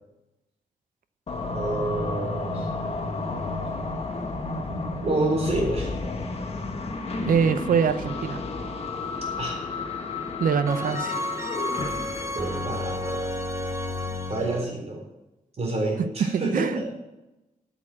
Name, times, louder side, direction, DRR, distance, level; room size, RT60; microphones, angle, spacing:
sound 1, 1.3-13.3, left 3 dB, 45° left, 1.4 m, -32 dB
voice 1, 1.5-2.7 5.0-5.9 9.4-9.6 12.3-13.3 14.3-15.0 15.6-16.9, right 2 dB, 45° right, -1 dB, 3.8 m, -28 dB
sound 2, 7.2-8.0 10.7-14.6, left 1 dB, 20° right, 1.3 m, -32 dB
voice 2, 7.2-8.4 10.4-11.2 16.3-16.9, right 7 dB, 80° right, 12 dB, 0.7 m, -24 dB
8.8 x 7.1 x 8.6 m, 0.99 s
wide cardioid pair, 135°, 14 cm